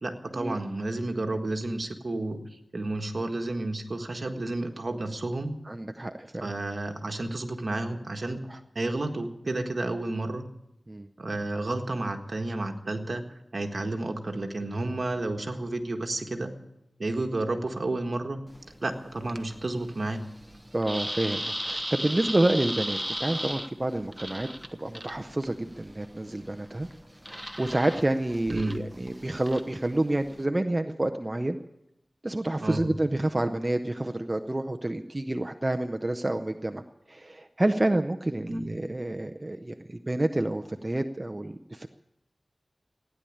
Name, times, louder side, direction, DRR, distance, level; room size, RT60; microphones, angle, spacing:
voice 1, 0.0-2.4 2.7-5.5 6.4-8.4 8.7-10.5 11.2-13.2 13.5-16.5 17.0-18.4 18.8-20.2 28.5-28.8 32.6-32.9 38.5-38.7, right 2 dB, 60° right, 4 dB, 1.6 m, -31 dB
voice 2, 5.7-6.5 8.5-8.6 10.9-11.1 17.1-17.2 20.7-24.5 24.8-26.9 27.3-31.6 32.2-36.8 37.1-41.9, right 1 dB, 30° right, 6 dB, 0.7 m, -28 dB
sound 1, 18.5-30.4, equal, 5° right, 1.1 m, -38 dB
16.0 x 10.0 x 8.7 m, 0.88 s
wide cardioid pair, 60°, 0 cm